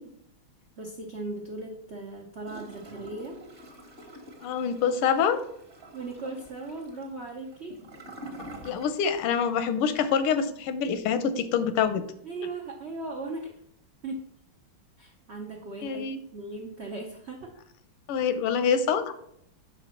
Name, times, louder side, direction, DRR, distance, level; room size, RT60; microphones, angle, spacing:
voice 1, 0.8-3.4 5.9-7.8 12.2-13.5 14.0-14.3 15.0-17.5, right 2 dB, 80° right, 1 dB, 0.6 m, -38 dB
Gurgling / Toilet flush, 2.4-9.3 9.6-9.7, right 1 dB, 30° right, 1.3 m, -46 dB
voice 2, 4.4-5.4 8.6-12.0 15.8-16.2 18.1-19.1, left 7 dB, 90° left, 10 dB, 1.6 m, -26 dB
5.8 x 5.1 x 5.6 m, 0.71 s
omnidirectional pair, 2.4 m